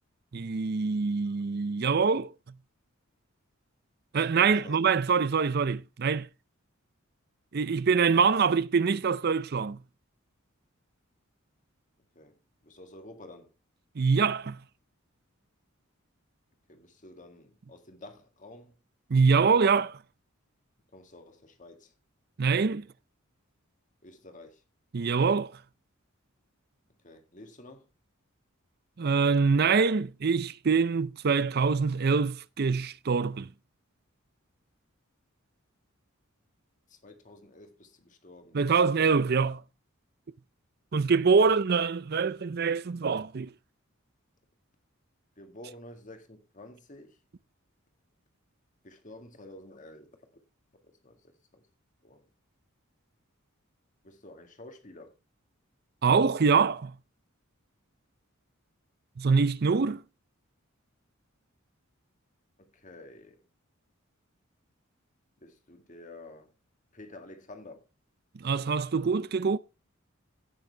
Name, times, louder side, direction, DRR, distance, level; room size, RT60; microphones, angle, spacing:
voice 1, 0.3-2.3 4.1-6.3 7.5-9.8 14.0-14.6 19.1-20.0 22.4-22.9 24.9-25.5 29.0-33.5 38.5-39.6 40.9-43.5 56.0-56.9 59.2-60.0 68.4-69.6, right 5 dB, 50° right, 0.5 m, -24 dB
voice 2, 4.2-4.8 12.2-12.3 12.6-13.5 16.7-18.7 20.9-21.9 24.0-24.6 27.0-27.8 36.9-38.6 41.4-41.5 45.4-47.1 48.8-50.2 51.0-51.2 51.5-51.6 52.0-52.2 54.0-55.1 62.7-63.4 65.4-66.5 66.9-67.8, left 2 dB, 35° left, 1.8 m, -50 dB
16.0 x 6.6 x 3.3 m
head